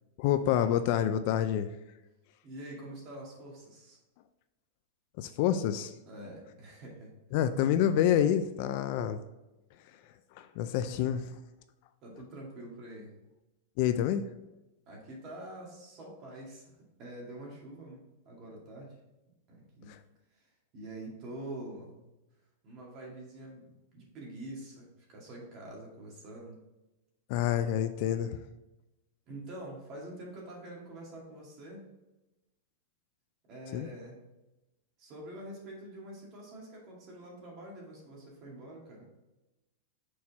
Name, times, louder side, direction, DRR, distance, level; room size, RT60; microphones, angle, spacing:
voice 1, 0.2-1.7 5.2-5.9 7.3-9.2 10.4-11.3 13.8-14.3 19.9-20.0 27.3-28.3 33.7-33.9, left 10 dB, 45° left, 10 dB, 0.3 m, -27 dB
voice 2, 2.4-4.0 6.0-7.1 12.0-13.1 14.9-19.0 19.5-19.9 20.4-20.5 20.7-22.0 22.6-23.7 23.9-26.6 29.3-31.9 33.5-34.2 35.0-39.1, right 1 dB, 30° right, -2 dB, 2.2 m, -46 dB
6.4 x 4.3 x 4.1 m, 0.99 s
supercardioid pair, 165°, 0 cm